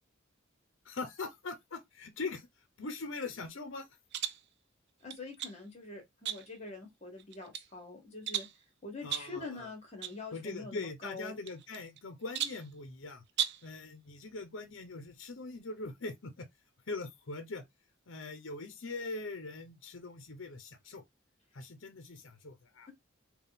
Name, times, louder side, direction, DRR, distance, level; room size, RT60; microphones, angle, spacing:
voice 1, 0.8-2.5 2.8-3.9 9.0-9.7 10.3-13.2 13.6-16.5 16.9-17.7 18.1-21.0 21.5-22.9, left 3 dB, 60° left, 0.7 m, -42 dB
sound 1, 4.1-4.5 5.1-5.6 6.3-6.7 7.2-7.7 8.3-8.6 9.1-9.4 10.0-10.2 10.5-10.6 11.5-12.0 12.3-12.7 13.3-13.7, right 9 dB, 55° right, 0.4 m, -36 dB
voice 2, 5.0-8.5 8.8-11.3, left 3 dB, 30° left, 1.4 m, -45 dB
3.6 x 2.3 x 4.0 m
head